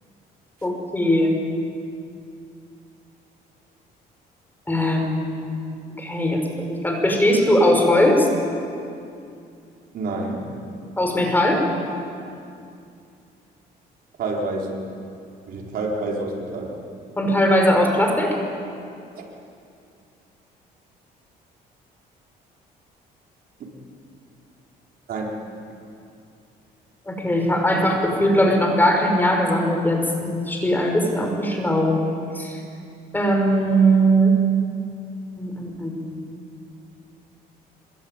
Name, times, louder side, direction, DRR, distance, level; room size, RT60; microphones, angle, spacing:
voice 1, 0.6-1.3 4.7-5.5 6.0-8.3 11.0-11.6 17.2-18.4 27.1-32.0 32.3-32.6 33.1-34.4 35.4-36.2, equal, 10° left, 2 dB, 5.9 m, -20 dB
voice 2, 9.9-10.5 14.2-14.9 15.5-16.8 19.2-19.3 23.6-23.7 25.1-25.4, right 2 dB, 65° right, -1 dB, 4.9 m, -28 dB
26.5 x 23.0 x 9.2 m, 2.5 s
cardioid pair, 110°, 17 cm